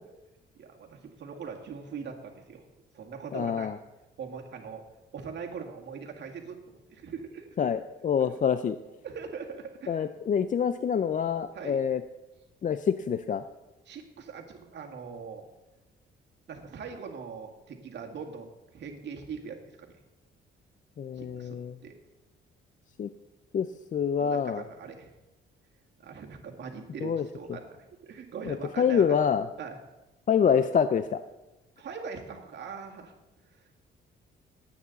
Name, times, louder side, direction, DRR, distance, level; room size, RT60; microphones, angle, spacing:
voice 1, 0.6-2.6 2.9-3.7 4.2-4.8 5.1-6.6 6.9-7.5 8.3-8.4 9.0-10.1 11.5-11.8 13.9-15.5 16.5-18.5 18.7-20.0 21.2-22.0 24.2-25.1 26.0-27.8 28.0-29.2 29.6-29.8 31.8-33.1, right 6 dB, 60° right, 2 dB, 2.1 m, -41 dB
voice 2, 3.3-3.8 7.6-8.8 9.9-12.0 12.6-13.4 21.0-21.8 23.0-23.1 23.5-24.6 27.0-27.3 28.4-29.5 30.3-31.2, left 7 dB, 40° left, 12 dB, 0.5 m, -26 dB
18.5 x 8.7 x 4.1 m, 1.0 s
cardioid pair, 90°, 20 cm